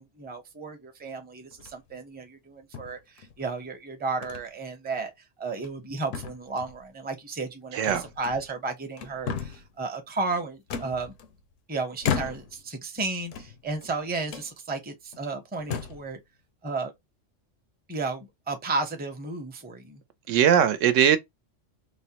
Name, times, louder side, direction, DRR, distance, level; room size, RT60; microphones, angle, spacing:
voice 1, 0.0-5.1 5.4-11.1 11.7-16.2 16.6-16.9 17.9-20.0, right 3 dB, 10° right, 0.5 m, -33 dB
sound 1, 1.5-1.9 2.7-3.5 4.2-4.5 4.9-5.0 5.5-5.9 6.1-6.8 7.9-8.6 8.9-9.7 10.7-11.5 12.0-12.7 13.2-13.9 14.3-14.5 15.1-15.2 15.6-16.1, left 7 dB, 85° left, 1.0 m, -34 dB
voice 2, 7.7-8.0 20.3-21.2, right 9 dB, 80° right, 0.9 m, -20 dB
4.9 x 2.1 x 2.8 m
omnidirectional pair, 1.3 m